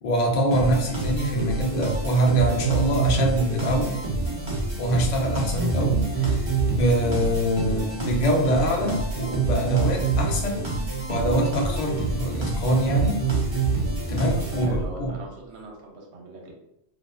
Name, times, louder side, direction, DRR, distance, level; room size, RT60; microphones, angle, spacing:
voice 1, 0.0-4.0 4.8-10.6 11.1-13.2 13.5-13.6 14.1-15.1, right 1 dB, 55° left, 1 dB, 0.5 m, -24 dB
sound 1, 0.5-15.1, right 4 dB, 35° right, 0.4 m, -26 dB
voice 2, 14.4-16.5, right 2 dB, 70° right, 0 dB, 0.9 m, -41 dB
2.4 x 2.3 x 2.3 m, 0.83 s
omnidirectional pair, 1.2 m